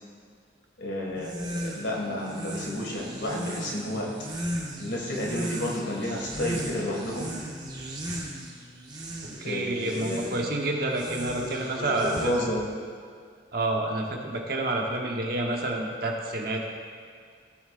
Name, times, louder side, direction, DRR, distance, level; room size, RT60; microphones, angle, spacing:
voice 1, 0.8-4.1 4.8-7.3 9.3-10.3 11.4-12.7, left 1 dB, 75° left, -2 dB, 2.0 m, -31 dB
sound 1, 1.1-12.7, right 1 dB, 20° right, 0.9 m, -37 dB
voice 2, 9.4-12.5 13.5-16.7, right 2 dB, 50° right, 0 dB, 1.1 m, -29 dB
16.0 x 7.0 x 2.5 m, 2.1 s
head